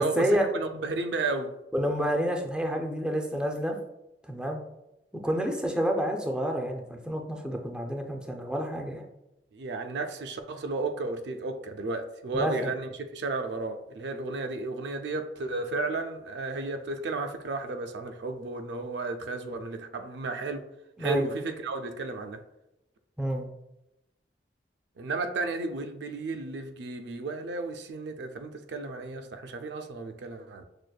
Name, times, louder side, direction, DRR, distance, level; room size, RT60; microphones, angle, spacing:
voice 1, 0.0-0.5 1.7-3.8 4.3-4.6 5.2-9.0 12.3-12.7 21.0-21.2 23.2-23.5, equal, 5° right, 0.4 m, -29 dB
voice 2, 0.5-1.5 9.5-20.7 21.0-22.4 25.0-30.6, right 3 dB, 70° right, 0.4 m, -33 dB
6.1 x 2.5 x 2.2 m
head